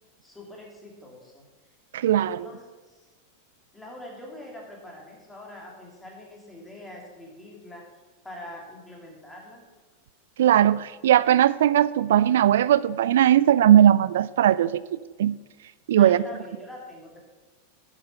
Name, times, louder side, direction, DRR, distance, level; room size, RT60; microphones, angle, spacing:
voice 1, 0.2-1.4 2.2-3.1 3.7-7.8 8.2-9.6 16.0-17.2, left 1 dB, 5° left, -2 dB, 2.9 m, -44 dB
voice 2, 1.9-2.5 10.4-15.4 15.9-16.2, right 11 dB, 60° right, 18 dB, 0.3 m, -19 dB
11.0 x 7.4 x 5.5 m, 1.3 s
figure-of-eight pair, 90°, 0 cm